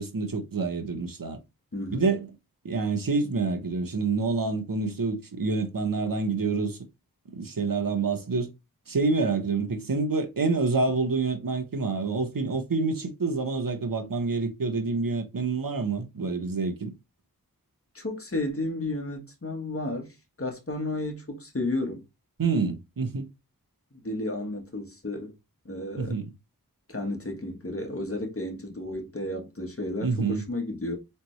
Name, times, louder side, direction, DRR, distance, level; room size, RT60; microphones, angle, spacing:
voice 1, 0.0-1.4 1.9-2.3 2.6-6.8 7.3-8.5 8.9-16.9 22.4-23.2 26.0-26.3 30.0-30.4, right 4 dB, 60° right, 1.0 m, -27 dB
voice 2, 1.7-2.1 17.9-22.0 23.9-25.3 25.6-26.2 26.9-31.0, left 2 dB, 35° left, 1.4 m, -32 dB
3.9 x 3.4 x 3.1 m
wide cardioid pair, 50°, 37 cm